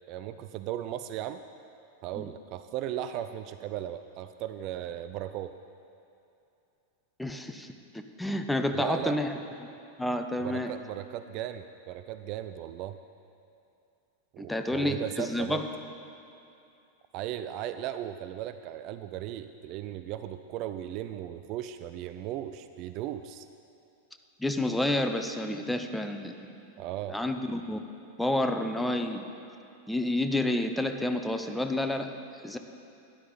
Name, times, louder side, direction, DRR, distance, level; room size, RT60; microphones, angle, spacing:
voice 1, 0.1-1.4 2.0-5.5 8.7-9.2 10.4-13.0 14.3-15.6 17.1-23.5 26.8-27.2, right 12 dB, 40° right, 10 dB, 0.3 m, -36 dB
voice 2, 7.2-7.7 7.9-9.3 10.0-10.7 14.4-15.6 24.4-26.5 27.1-27.8 28.2-29.3 29.9-32.1 32.4-32.6, left 1 dB, 5° left, 6 dB, 0.6 m, -29 dB
12.0 x 10.0 x 4.0 m, 2.7 s
figure-of-eight pair, 90°, 0 cm